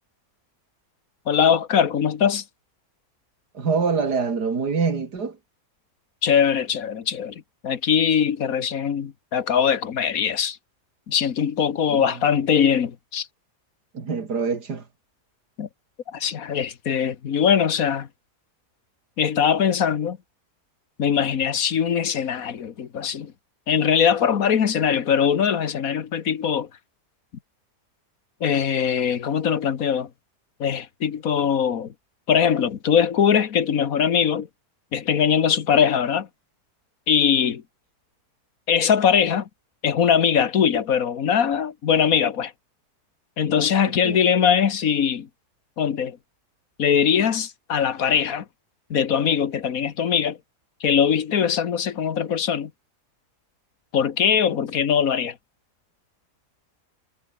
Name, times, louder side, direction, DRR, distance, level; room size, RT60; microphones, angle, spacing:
voice 1, 1.3-2.4 6.2-10.6 11.1-13.3 15.6-15.7 16.1-18.1 19.2-20.2 21.0-23.3 23.7-26.7 28.4-30.1 30.6-31.9 32.3-34.5 34.9-36.3 37.1-37.6 38.7-39.5 39.8-42.5 43.4-45.3 45.8-46.2 46.8-48.4 48.9-50.4 50.8-52.7 53.9-55.4, left 8 dB, 65° left, 1.7 m, -21 dB
voice 2, 3.5-5.4 11.9-12.1 13.9-14.8 44.0-44.2, right 5 dB, 85° right, 3.2 m, -25 dB
omnidirectional pair, 1.7 m